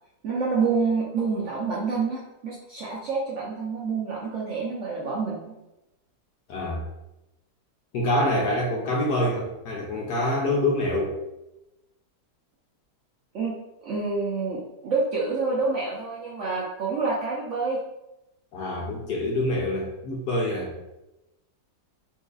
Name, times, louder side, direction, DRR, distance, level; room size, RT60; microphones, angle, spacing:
voice 1, 0.2-5.5 13.3-13.5 13.8-17.8, right 4 dB, 70° right, -5 dB, 0.7 m, -27 dB
voice 2, 6.5-6.8 7.9-11.2 18.5-20.7, left 1 dB, 70° left, -1 dB, 1.1 m, -26 dB
4.3 x 2.6 x 2.3 m, 0.93 s
omnidirectional pair, 2.0 m